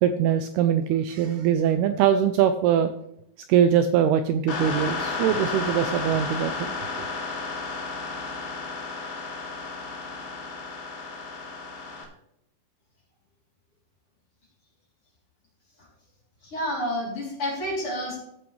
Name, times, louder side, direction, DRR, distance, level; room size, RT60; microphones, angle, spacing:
voice 1, 0.0-2.9 3.5-6.7, right 9 dB, 85° right, 9 dB, 2.4 m, -22 dB
sound 1, 4.5-12.1, left 3 dB, 80° left, 4.4 m, -32 dB
voice 2, 16.4-18.2, equal, 30° left, -4 dB, 4.0 m, -29 dB
15.0 x 8.5 x 3.3 m, 0.75 s
omnidirectional pair, 5.1 m